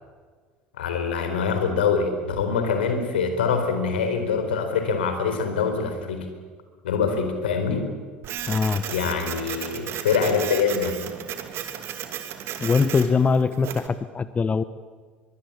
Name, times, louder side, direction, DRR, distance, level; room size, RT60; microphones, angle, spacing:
voice 1, 0.8-6.3 6.8-7.9 8.9-11.0, left 5 dB, 75° left, 7 dB, 4.3 m, -24 dB
Printer, 8.2-13.9, right 10 dB, 45° right, 2.7 m, -34 dB
voice 2, 8.5-8.8 12.6-14.6, left 5 dB, 25° left, 14 dB, 1.0 m, -22 dB
23.5 x 23.5 x 8.7 m, 1.5 s
figure-of-eight pair, 70°, 6 cm